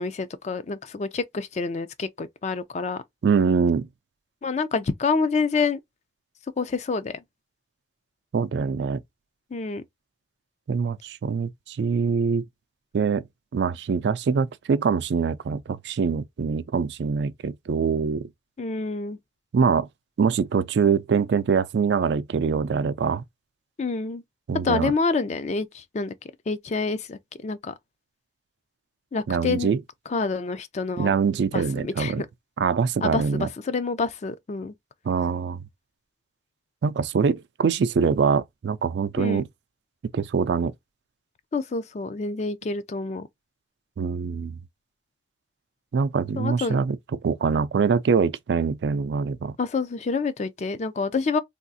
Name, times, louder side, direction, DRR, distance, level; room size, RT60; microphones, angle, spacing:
voice 1, 0.0-3.0 4.4-5.8 6.6-7.2 9.5-9.8 18.6-19.2 23.8-24.2 24.6-26.1 26.5-27.7 29.1-29.7 30.1-31.1 31.5-32.3 33.0-34.7 39.2-39.4 41.5-43.3 46.4-46.8 49.6-51.4, left 4 dB, 40° left, 0.4 m, -27 dB
voice 2, 3.2-3.9 8.3-9.0 10.7-12.4 12.9-13.2 13.5-18.3 19.5-19.9 20.2-23.2 24.5-24.9 29.3-29.8 31.0-32.2 32.6-33.5 35.1-35.6 36.8-39.5 40.1-40.7 44.0-44.6 45.9-47.0 47.2-49.5, right 5 dB, 75° right, 0.4 m, -24 dB
3.5 x 2.4 x 2.6 m
head